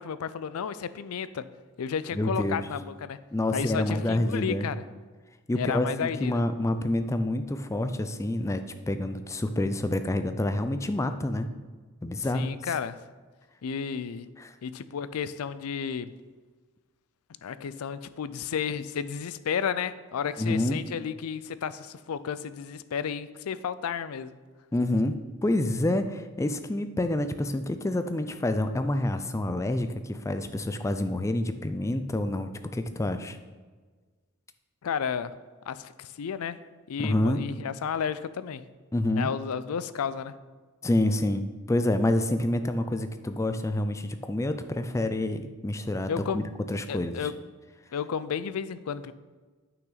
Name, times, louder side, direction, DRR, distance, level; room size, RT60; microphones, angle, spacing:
voice 1, 0.0-1.5 1.8-3.2 3.5-4.8 5.6-6.4 12.3-13.0 13.6-14.3 14.6-16.1 17.4-24.3 34.8-35.4 35.7-38.6 39.2-40.3 46.1-46.5 46.9-47.3 47.9-49.1, left 7 dB, 90° left, 15 dB, 0.4 m, -32 dB
voice 2, 2.1-2.6 3.3-4.7 5.5-11.5 12.0-12.5 14.4-14.5 20.4-20.8 24.7-33.4 37.0-37.4 38.9-39.3 40.8-46.4 46.7-47.2, left 1 dB, 15° left, 9 dB, 0.4 m, -28 dB
9.1 x 5.9 x 3.9 m, 1.4 s
head